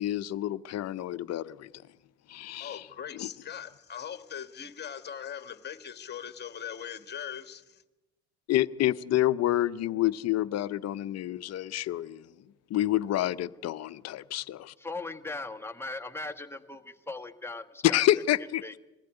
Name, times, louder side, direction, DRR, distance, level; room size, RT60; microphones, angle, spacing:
voice 1, 0.0-1.7 2.3-2.9 3.1-3.3 8.5-12.3 12.7-14.7 17.8-18.8, left 14 dB, 45° left, 0.8 m, -28 dB
voice 2, 2.6-7.8, left 8 dB, 30° left, 1.6 m, -40 dB
voice 3, 14.8-18.0 18.6-18.8, left 2 dB, 5° left, 1.3 m, -39 dB
21.5 x 15.5 x 9.9 m
supercardioid pair, 100°, 35 cm